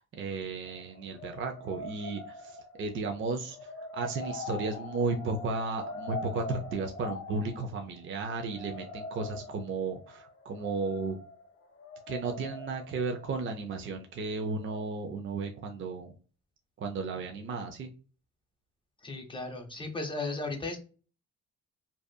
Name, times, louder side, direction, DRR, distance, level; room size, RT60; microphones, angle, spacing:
voice 1, 0.0-11.2 12.1-16.1 16.8-17.9, right 3 dB, 40° right, 4 dB, 0.5 m, -34 dB
sound 1, 0.6-14.2 14.6-14.8, left 2 dB, 50° left, 0.6 m, -43 dB
voice 2, 19.0-20.8, left 3 dB, 15° left, 3 dB, 0.8 m, -35 dB
2.7 x 2.4 x 2.2 m, 0.37 s
cardioid pair, 90°, 30 cm